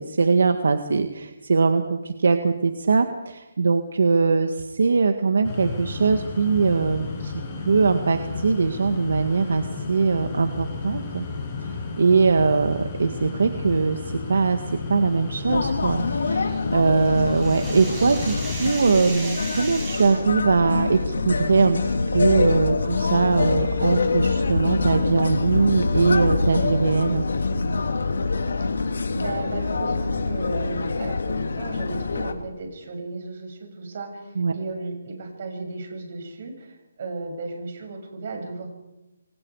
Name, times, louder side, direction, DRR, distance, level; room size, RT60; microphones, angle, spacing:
voice 1, 0.0-7.3 7.6-11.3 11.6-11.7 12.0-14.0 14.3-14.6 14.9-27.2 34.4-34.5, right 4 dB, 65° right, 7 dB, 1.8 m, -21 dB
sound 1, 5.4-18.7, left 4 dB, 20° left, 5.9 m, -33 dB
sound 2, 15.5-32.3, left 3 dB, 75° left, 3.1 m, -25 dB
sound 3, 16.5-20.3, right 2 dB, 5° right, 7.0 m, -37 dB
voice 2, 29.1-38.7, right 3 dB, 40° right, 3 dB, 7.0 m, -35 dB
29.0 x 23.5 x 4.9 m, 0.99 s
hypercardioid pair, 175°, 0 cm